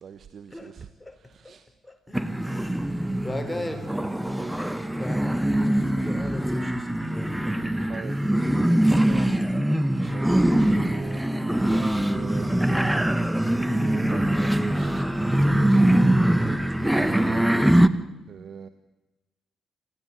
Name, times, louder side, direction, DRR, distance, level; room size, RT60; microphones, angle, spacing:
voice 1, 0.0-0.9 1.3-1.6 3.7-3.8 7.4-8.2 9.1-9.5 10.0-11.2 11.7-12.5 13.2-13.5 13.8-16.3 17.1-17.6 18.3-18.7, right 7 dB, 55° right, 12 dB, 1.0 m, -42 dB
voice 2, 1.8-4.0 4.2-4.4 4.9-7.7, left 1 dB, 10° left, 6 dB, 4.4 m, -38 dB
sound 1, 2.1-17.9, right 1 dB, 5° right, 1.4 m, -23 dB
27.5 x 14.0 x 8.0 m, 1.1 s
hypercardioid pair, 40°, 0 cm